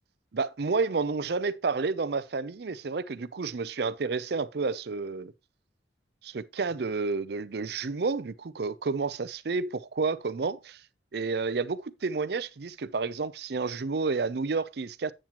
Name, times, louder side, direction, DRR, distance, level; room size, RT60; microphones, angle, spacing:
voice 1, 0.3-5.3 6.2-10.8 11.1-15.1, right 4 dB, 55° right, 0.5 m, -30 dB
8.8 x 7.4 x 2.9 m
head